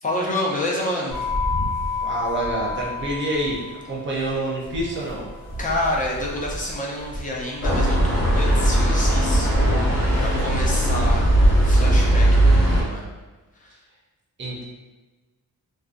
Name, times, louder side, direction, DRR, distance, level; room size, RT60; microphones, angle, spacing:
voice 1, 0.0-1.2 5.6-9.8 10.2-11.2 11.6-13.0 13.6-13.7, left 1 dB, 25° left, -3 dB, 0.4 m, -28 dB
sound 1, 1.1-11.6, left 1 dB, 50° left, 0.8 m, -29 dB
voice 2, 2.0-5.3 14.4-14.6, right 1 dB, 35° right, -4 dB, 0.5 m, -27 dB
sound 2, 7.6-12.8, right 1 dB, 85° left, 0.9 m, -18 dB
2.4 x 2.2 x 2.4 m, 1.2 s
wide cardioid pair, 155°, 35 cm